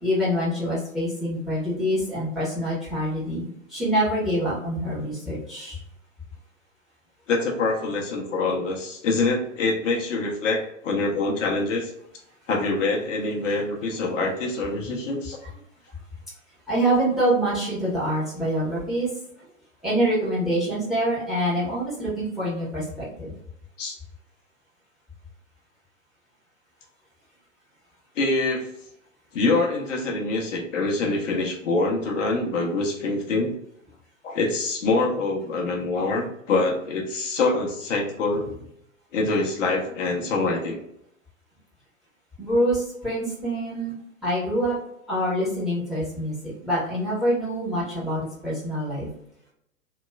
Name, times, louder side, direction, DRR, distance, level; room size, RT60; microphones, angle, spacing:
voice 1, 0.0-5.8 16.7-19.1 19.8-23.3 42.4-43.9 44.2-44.8 45.1-46.3 46.6-49.1, equal, ahead, -7 dB, 1.5 m, -25 dB
voice 2, 7.3-11.9 12.5-15.4 23.8-23.9 28.1-28.7 29.3-33.5 34.2-38.5 39.1-40.8, left 3 dB, 65° left, -1 dB, 1.0 m, -25 dB
3.1 x 2.8 x 2.4 m, 0.76 s
hypercardioid pair, 115°, 41 cm